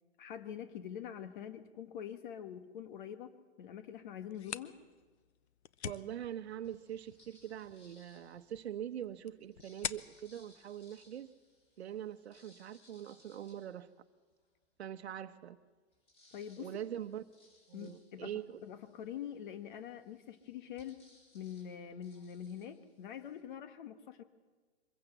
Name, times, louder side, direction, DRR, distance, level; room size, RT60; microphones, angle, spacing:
voice 1, 0.2-3.3 3.6-4.8 16.3-16.7 17.7-18.3 18.6-21.0 21.3-24.2, left 9 dB, 50° left, 10 dB, 1.3 m, -45 dB
sound 1, 4.2-11.7, left 9 dB, 80° left, 0.9 m, -48 dB
voice 2, 5.8-11.3 11.8-13.9 14.8-15.6 16.6-17.2 17.7-18.6, right 10 dB, 75° right, 8 dB, 1.0 m, -43 dB
sound 2, 6.6-8.8 9.4-14.6 15.1-15.2 15.4-23.4, left 2 dB, 20° left, 3.9 m, -67 dB
24.0 x 15.5 x 8.1 m, 1.4 s
hypercardioid pair, 150°, 32 cm